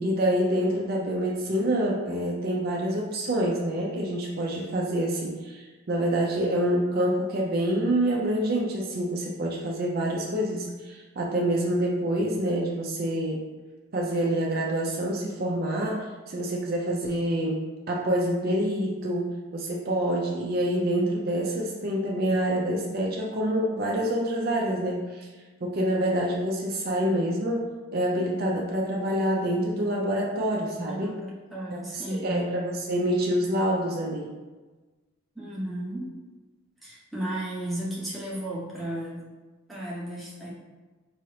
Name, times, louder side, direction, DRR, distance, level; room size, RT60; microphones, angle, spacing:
voice 1, 0.0-13.4 13.9-17.6 17.9-25.3 25.6-31.2 31.7-34.3, right 1 dB, 45° right, -2 dB, 0.5 m, -27 dB
voice 2, 20.6-21.1 30.9-32.6 35.3-36.1 36.8-39.3 39.7-40.5, right 1 dB, ahead, -7 dB, 0.8 m, -34 dB
4.6 x 2.8 x 3.2 m, 1.3 s
head